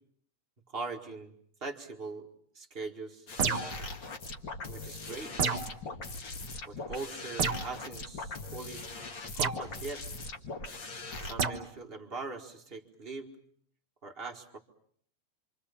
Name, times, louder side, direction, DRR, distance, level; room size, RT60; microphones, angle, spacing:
voice 1, 0.7-1.3 1.6-2.3 2.5-3.3 4.7-5.3 6.6-8.8 9.3-10.0 11.2-13.3 14.0-14.6, right 4 dB, 25° right, 2 dB, 1.4 m, -41 dB
sound 1, 3.3-11.3, left 3 dB, 40° left, 2.0 m, -41 dB
sound 2, 3.4-3.8 5.4-5.8 7.4-7.7 9.4-9.6 11.4-11.6, right 5 dB, 50° right, 1.9 m, -29 dB
27.5 x 25.5 x 7.1 m, 0.64 s
omnidirectional pair, 3.8 m